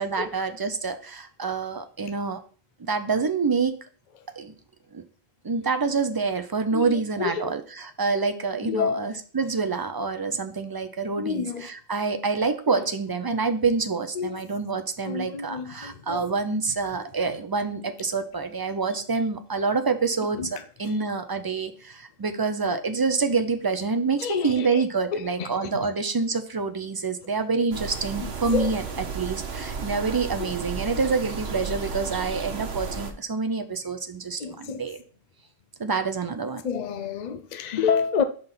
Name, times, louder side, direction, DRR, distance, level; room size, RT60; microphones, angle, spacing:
voice 1, 0.0-2.4 2.8-3.7 4.4-4.5 4.9-5.0 5.4-28.8 29.1-35.0 35.8-36.6, right 4 dB, 35° right, 0.4 m, -27 dB
voice 2, 6.7-7.5 8.6-9.2 11.2-11.7 14.2-14.4 15.0-16.2 20.4-20.5 24.2-24.8 25.1-25.9 28.5-28.7 30.4-30.5 34.4-34.8 36.6-38.2, left 6 dB, 50° left, 0.6 m, -29 dB
sound 1, 27.7-33.1, right 5 dB, 70° right, 1.2 m, -33 dB
5.4 x 3.9 x 5.7 m
omnidirectional pair, 1.1 m